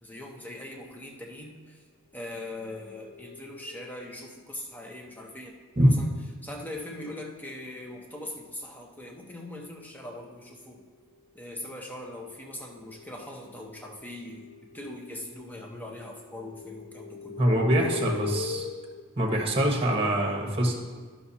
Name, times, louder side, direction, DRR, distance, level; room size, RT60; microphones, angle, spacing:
voice 1, 0.0-1.8 2.1-5.5 5.8-6.1 6.4-10.8 11.3-14.4 14.7-17.4 17.8-18.1, left 1 dB, 10° left, 0 dB, 0.9 m, -41 dB
sound 1, 2.7-4.1 11.9-15.5 15.8-19.0, left 6 dB, 35° left, 0.3 m, -41 dB
voice 2, 17.4-18.7 19.2-20.8, right 1 dB, 25° right, 1 dB, 1.3 m, -24 dB
14.0 x 5.9 x 2.8 m, 1.5 s
head